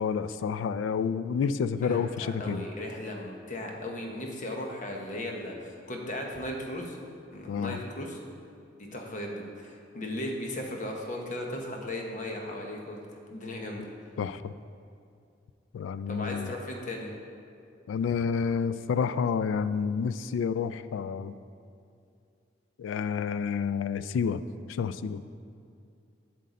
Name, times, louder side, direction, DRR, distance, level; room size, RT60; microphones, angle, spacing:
voice 1, 0.0-2.7 7.5-7.8 14.2-14.5 15.7-16.5 17.9-21.3 22.8-24.4 24.7-25.2, left 6 dB, 85° left, 15 dB, 0.3 m, -29 dB
voice 2, 1.8-7.0 7.3-8.2 8.9-13.0 13.3-13.8 16.1-17.1, left 1 dB, 40° left, 1 dB, 0.9 m, -36 dB
7.7 x 6.5 x 4.2 m, 2.5 s
head